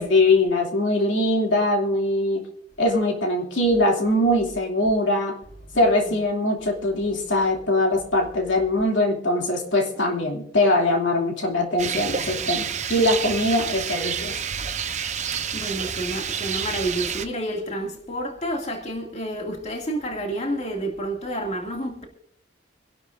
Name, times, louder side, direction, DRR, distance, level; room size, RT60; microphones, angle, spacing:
voice 1, 0.0-2.5 2.8-5.4 5.8-14.4, left 1 dB, 80° left, 2.7 m, -22 dB
Rain, 11.8-17.3, right 7 dB, 40° right, 0.8 m, -29 dB
voice 2, 15.5-22.1, right 1 dB, 35° left, 2.3 m, -29 dB
26.0 x 11.5 x 2.6 m
head